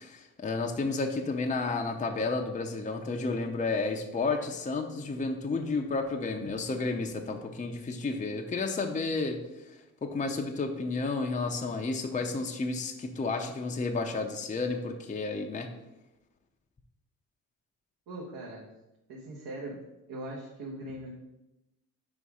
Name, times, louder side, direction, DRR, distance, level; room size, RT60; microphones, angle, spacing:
voice 1, 0.0-9.4 9.7-15.7, left 3 dB, 20° left, 3 dB, 0.6 m, -31 dB
voice 2, 18.1-18.7 19.1-19.8 20.1-21.1, right 1 dB, 60° right, -3 dB, 1.3 m, -40 dB
4.9 x 4.2 x 4.9 m, 0.97 s
cardioid pair, 80°, 39 cm